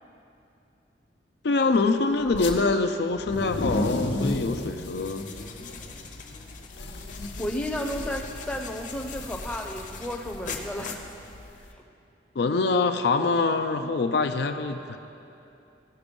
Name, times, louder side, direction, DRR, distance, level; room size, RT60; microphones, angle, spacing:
voice 1, 1.4-5.3 12.4-15.0, left 3 dB, 60° left, 7 dB, 0.4 m, -24 dB
sound 1, 2.3-2.5 3.1-11.6, left 2 dB, 80° left, 0.9 m, -34 dB
sound 2, 4.7-11.7, left 4 dB, 45° left, 0.8 m, -42 dB
voice 2, 7.4-11.1 13.7-14.2, left 1 dB, 5° left, 2 dB, 0.6 m, -33 dB
15.5 x 6.0 x 5.3 m, 2.8 s
head